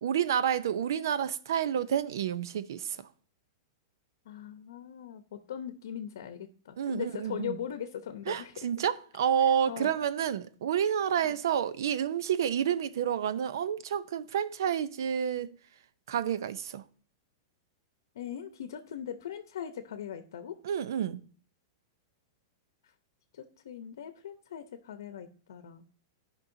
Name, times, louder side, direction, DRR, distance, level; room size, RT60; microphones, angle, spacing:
voice 1, 0.0-3.0 6.8-7.6 8.3-15.5 16.1-16.8 20.6-21.2, right 9 dB, 75° right, 0.6 m, -29 dB
voice 2, 4.3-8.5 9.4-10.0 18.2-20.6 23.3-25.8, left 9 dB, 80° left, 0.7 m, -40 dB
12.0 x 5.4 x 2.7 m
supercardioid pair, 150°, 2 cm